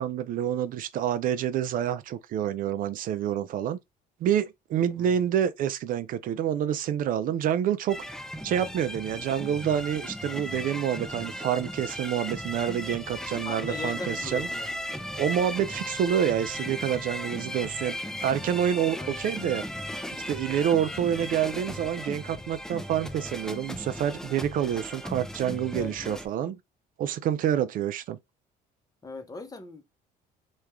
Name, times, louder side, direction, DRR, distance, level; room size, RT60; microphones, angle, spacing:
voice 1, 0.0-3.8 4.2-8.2 8.4-14.5 15.2-18.0 18.2-19.6 20.3-26.6 27.0-28.2, right 9 dB, 55° right, 0.4 m, -27 dB
sound 1, 7.9-26.3, left 1 dB, 5° left, 0.4 m, -36 dB
voice 2, 13.5-14.7 19.0-19.2 25.7-26.2 29.0-29.8, left 3 dB, 20° left, 0.8 m, -39 dB
3.1 x 2.3 x 3.4 m
cardioid pair, 105°, 17 cm